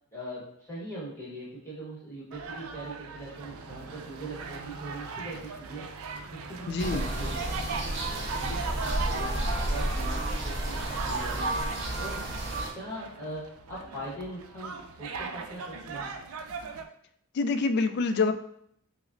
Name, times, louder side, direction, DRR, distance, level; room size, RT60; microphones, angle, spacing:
voice 1, 0.1-6.0 6.3-16.1, right 1 dB, 10° left, -7 dB, 1.1 m, -41 dB
sound 1, 2.3-16.8, right 5 dB, 85° right, 0.4 m, -39 dB
voice 2, 6.7-7.1 17.3-18.3, left 4 dB, 50° left, 9 dB, 0.3 m, -26 dB
sound 2, 6.8-12.7, right 1 dB, 60° right, 0.8 m, -31 dB
6.0 x 2.0 x 2.5 m, 0.70 s
head